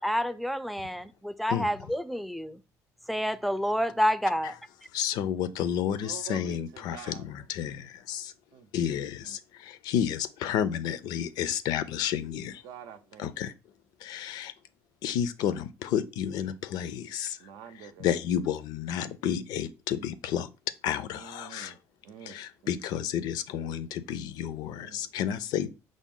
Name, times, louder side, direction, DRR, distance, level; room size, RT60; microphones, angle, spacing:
voice 1, 0.0-2.6 3.1-4.5, equal, ahead, 0.3 m, -28 dB
voice 2, 1.5-1.9 4.4-4.5 4.9-8.3 8.7-12.6 13.2-13.5 14.0-14.5 15.0-17.5 17.7-20.5 20.8-21.7 22.2-25.7, left 9 dB, 75° left, 0.4 m, -31 dB
voice 3, 6.0-7.2 8.5-9.4 12.6-13.3 17.4-18.1 21.1-22.7 24.7-25.1, right 9 dB, 75° right, 0.5 m, -47 dB
4.9 x 2.0 x 3.7 m
supercardioid pair, 80°, 7 cm